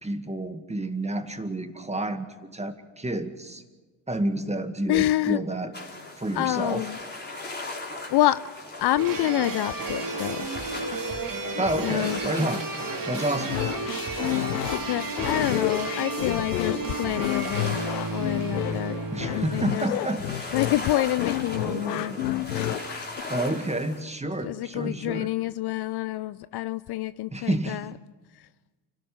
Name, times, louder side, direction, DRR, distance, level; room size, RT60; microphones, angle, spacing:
voice 1, 0.0-3.6 4.1-5.7 6.2-6.9 11.5-12.6 13.1-13.5 19.1-20.5 21.5-22.4 23.3-25.3 27.3-27.8, right 1 dB, 15° right, 8 dB, 2.1 m, -30 dB
voice 2, 4.9-5.4 6.3-7.0 8.1-8.4 8.8-10.5 11.5-12.2 14.6-17.8 18.1-19.0 19.3-19.9 20.5-22.2 24.4-27.9, left 15 dB, 55° left, 16 dB, 0.6 m, -27 dB
sound 1, 5.7-24.0, left 2 dB, 20° left, 4.2 m, -39 dB
sound 2, 9.0-19.7, right 3 dB, 45° right, 3.0 m, -32 dB
sound 3, 13.5-23.2, left 13 dB, 90° left, 0.8 m, -30 dB
29.5 x 12.5 x 7.6 m, 1.3 s
hypercardioid pair, 50°, 47 cm